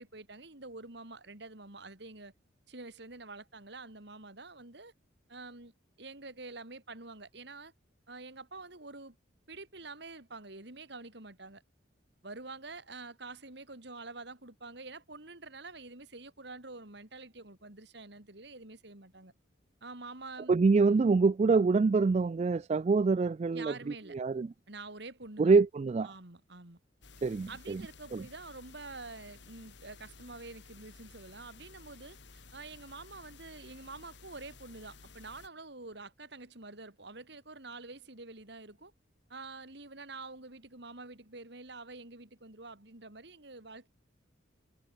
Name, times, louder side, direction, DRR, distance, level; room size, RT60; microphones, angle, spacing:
voice 1, 0.0-2.3 2.7-4.9 5.3-5.7 6.0-7.7 8.1-9.2 9.5-11.6 12.2-19.3 19.8-20.5 23.5-24.2 24.7-25.5 26.0-26.8 27.5-38.9 39.3-43.9, right 3 dB, 60° right, 3.1 m, -47 dB
voice 2, 20.5-23.7 24.1-24.5 25.4-26.1 27.2-27.8 28.1-28.2, right 4 dB, 35° right, 0.3 m, -25 dB
sound 1, 27.0-35.5, left 4 dB, 65° left, 2.5 m, -54 dB
head